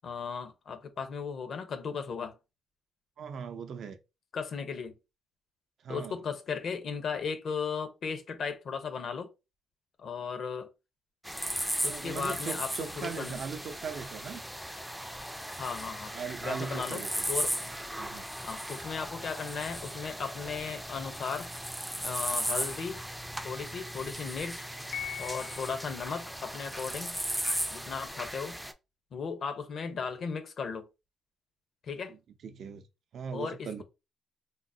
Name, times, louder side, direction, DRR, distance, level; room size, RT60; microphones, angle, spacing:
voice 1, 0.0-2.4 4.3-4.9 5.9-9.3 10.0-10.7 11.8-13.4 15.5-16.1 16.4-17.0 17.3-17.5 18.4-21.5 22.0-23.0 23.4-24.7 25.2-27.2 27.7-28.6 29.1-30.9 31.8-32.1 33.3-33.8, left 5 dB, 60° left, 0.7 m, -36 dB
voice 2, 3.2-4.0 5.8-6.2 11.9-14.4 16.1-17.3 18.0-18.3 32.1-32.8 33.1-33.8, right 6 dB, 65° right, 0.5 m, -39 dB
sound 1, 11.2-28.7, equal, 5° right, 0.4 m, -37 dB
Piano, 24.9-26.0, left 9 dB, 75° left, 0.3 m, -40 dB
3.6 x 2.0 x 2.6 m
cardioid pair, 90°, 0 cm